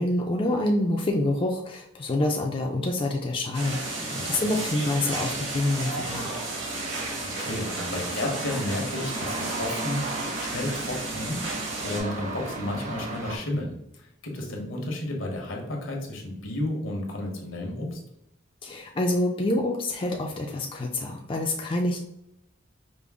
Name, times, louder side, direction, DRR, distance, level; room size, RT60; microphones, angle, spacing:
voice 1, 0.0-6.3 18.6-22.0, left 1 dB, 25° left, 1 dB, 0.3 m, -27 dB
sound 1, 3.5-12.0, right 2 dB, 65° right, 1.3 m, -34 dB
sound 2, 3.6-13.4, right 2 dB, 35° right, 0.7 m, -36 dB
voice 2, 4.0-4.5 7.2-11.4 11.8-18.0, left 1 dB, 80° left, 0 dB, 1.1 m, -32 dB
5.1 x 2.0 x 3.5 m, 0.79 s
head